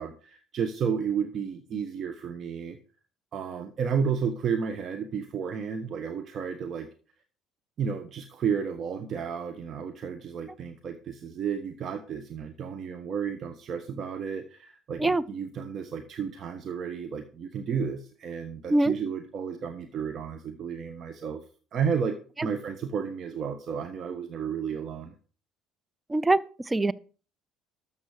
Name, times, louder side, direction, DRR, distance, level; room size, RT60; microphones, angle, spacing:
voice 1, 0.0-2.8 3.3-6.9 7.8-21.4 21.7-22.2 22.4-25.1, right 7 dB, 50° right, 1.3 m, -32 dB
voice 2, 26.1-26.9, right 2 dB, 15° right, 0.5 m, -23 dB
13.0 x 7.4 x 4.8 m
hypercardioid pair, 60°, 0 cm